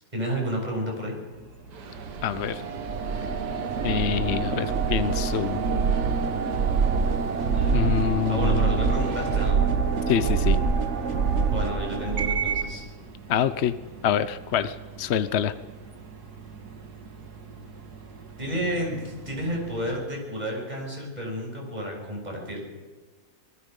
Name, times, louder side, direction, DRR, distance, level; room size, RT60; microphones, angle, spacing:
voice 1, 0.1-1.2 8.3-9.6 11.5-12.8 18.4-22.6, equal, 25° right, -1 dB, 6.9 m, -31 dB
sound 1, 1.3-20.0, right 5 dB, 70° right, 2.4 m, -45 dB
sound 2, 1.7-9.5, right 5 dB, 90° right, 2.0 m, -43 dB
sound 3, 2.1-12.8, right 5 dB, 50° right, 1.4 m, -25 dB
voice 2, 2.2-2.6 3.8-5.6 7.7-8.7 10.1-10.6 13.3-13.8 14.0-15.5, left 8 dB, 55° left, 13 dB, 0.8 m, -26 dB
26.5 x 20.0 x 5.4 m, 1.4 s
omnidirectional pair, 1.7 m